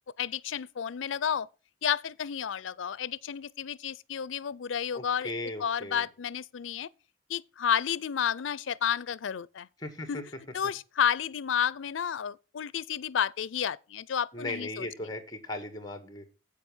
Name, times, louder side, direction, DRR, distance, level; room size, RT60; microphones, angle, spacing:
voice 1, 0.2-1.5 1.8-5.3 5.6-6.9 7.3-9.7 10.1-10.2 10.5-14.9, left 8 dB, 90° left, 0.5 m, -31 dB
voice 2, 4.9-6.1 9.8-10.2 14.3-16.2, left 2 dB, 20° left, 1.7 m, -37 dB
8.1 x 7.3 x 7.2 m
head